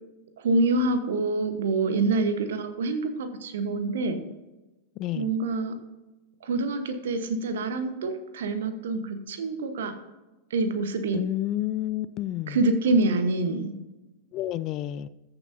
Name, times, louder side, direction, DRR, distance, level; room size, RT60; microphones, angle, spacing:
voice 1, 0.4-4.2 5.1-5.7 6.4-10.0 10.5-11.2 12.5-13.7, right 3 dB, 60° right, 9 dB, 1.1 m, -26 dB
voice 2, 5.0-5.3 11.1-12.6 14.3-15.1, left 13 dB, 35° left, 16 dB, 0.3 m, -30 dB
14.5 x 6.9 x 2.7 m, 1.1 s
figure-of-eight pair, 90°, 0 cm